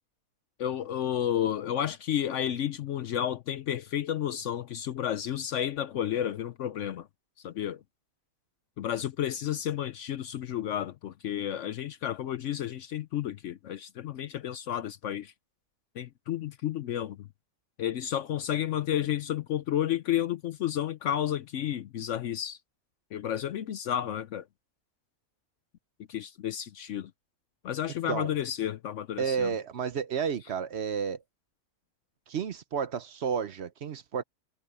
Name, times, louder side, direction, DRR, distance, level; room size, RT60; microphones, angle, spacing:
voice 1, 0.6-7.1 7.4-7.8 8.8-15.3 16.0-17.3 17.8-22.6 23.1-24.4 26.1-27.1 27.6-29.5, left 10 dB, 70° left, 0.9 m, -31 dB
voice 2, 29.2-31.2 32.3-34.2, right 7 dB, 55° right, 1.0 m, -31 dB
omnidirectional pair, 1.4 m